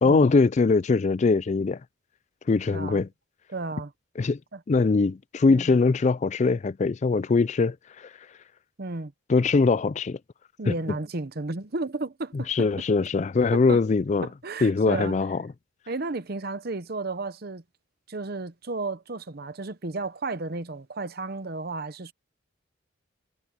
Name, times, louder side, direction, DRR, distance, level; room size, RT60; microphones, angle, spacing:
voice 1, 0.0-1.8 2.5-3.1 4.2-4.4 4.7-8.1 9.3-10.2 10.7-10.8 12.3-14.3 14.6-15.4, left 4 dB, 35° left, 0.3 m, -22 dB
voice 2, 2.7-3.0 3.5-3.9 4.5-4.6 5.5-5.8 8.8-9.1 10.6-12.7 13.5-13.8 14.2-15.1 15.9-17.6 18.1-22.1, right 3 dB, 50° right, 0.9 m, -33 dB
head